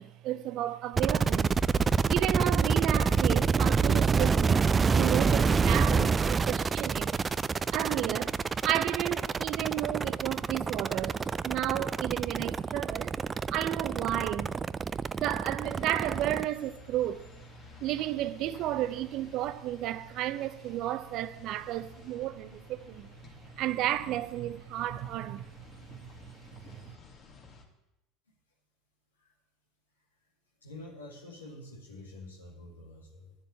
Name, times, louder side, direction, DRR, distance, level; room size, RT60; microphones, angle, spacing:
voice 1, 0.0-1.5 2.1-7.1 7.7-8.4 8.6-13.1 13.5-14.5 15.2-17.3 17.8-23.1 23.6-26.9, right 13 dB, 55° right, 0.7 m, -33 dB
sound 1, 1.0-16.4, right 5 dB, 25° right, 0.4 m, -27 dB
sound 2, 15.6-27.7, left 4 dB, 45° left, 2.3 m, -53 dB
voice 2, 30.0-30.3 30.6-33.3, left 2 dB, 85° left, 2.0 m, -48 dB
11.0 x 7.3 x 8.6 m
hypercardioid pair, 75°, 0 cm